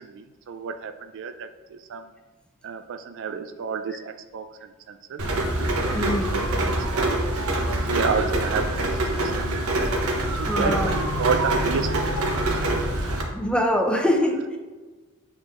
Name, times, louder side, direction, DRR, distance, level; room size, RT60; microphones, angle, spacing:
voice 1, 0.0-2.1 2.6-5.2 5.6-6.0 6.3-6.4 6.9-7.2 7.6-9.5 10.4-13.2, right 6 dB, 60° right, 9 dB, 0.4 m, -31 dB
Rain, 5.2-13.2, right 1 dB, 80° right, 1.0 m, -25 dB
voice 2, 5.9-6.3 10.5-10.9 13.3-14.6, left 1 dB, 5° left, 2 dB, 0.7 m, -23 dB
7.6 x 4.3 x 3.6 m, 1.3 s
head